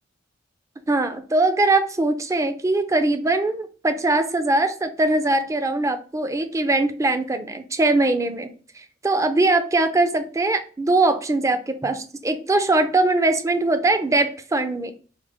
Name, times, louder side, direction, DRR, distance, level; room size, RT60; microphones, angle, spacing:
voice 1, 0.9-8.5 8.8-14.9, right 2 dB, 15° right, 8 dB, 0.4 m, -21 dB
4.8 x 2.0 x 3.5 m, 0.40 s
head